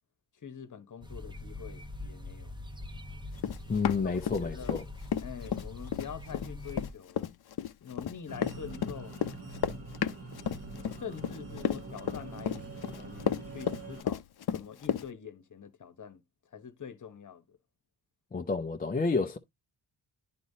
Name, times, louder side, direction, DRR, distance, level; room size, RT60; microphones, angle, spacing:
voice 1, 0.4-2.5 4.0-4.1 4.4-4.8 5.2-7.3 7.8-9.2 11.0-14.2 14.5-16.2 16.5-17.6, left 7 dB, 45° left, 1.1 m, -45 dB
sound 1, 1.0-6.9, left 2 dB, 10° right, 1.0 m, -43 dB
Run, 3.4-4.8 5.1-15.0, left 9 dB, 60° left, 0.6 m, -32 dB
voice 2, 3.7-4.8 18.3-19.4, left 4 dB, 20° left, 0.5 m, -30 dB
sound 2, 8.3-14.0, right 2 dB, 35° right, 1.1 m, -44 dB
11.5 x 4.2 x 2.7 m
wide cardioid pair, 155°, 44 cm